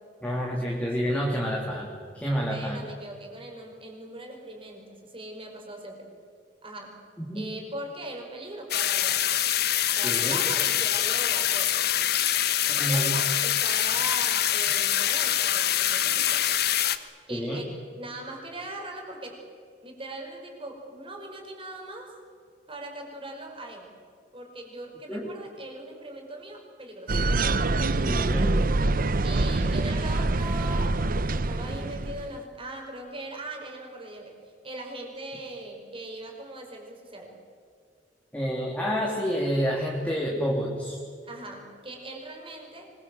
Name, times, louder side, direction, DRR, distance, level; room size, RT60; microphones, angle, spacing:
voice 1, 0.2-1.9 2.1-2.9 7.3-7.5 10.0-10.4 12.7-13.2 17.3-17.6 25.1-25.2 28.0-28.6 38.3-41.0, equal, 10° left, -3 dB, 3.1 m, -28 dB
voice 2, 2.5-6.1 6.6-7.0 7.3-9.4 10.0-12.1 12.8-16.5 17.3-17.7 18.0-19.4 19.8-22.1 22.7-23.9 24.3-27.2 29.2-34.4 34.6-37.3 41.2-42.9, right 2 dB, 30° right, 2 dB, 5.4 m, -40 dB
sound 1, 8.7-17.0, left 11 dB, 60° left, 1.3 m, -25 dB
sound 2, 27.1-32.4, right 2 dB, 55° right, 0.8 m, -25 dB
25.0 x 22.5 x 7.9 m, 2.1 s
head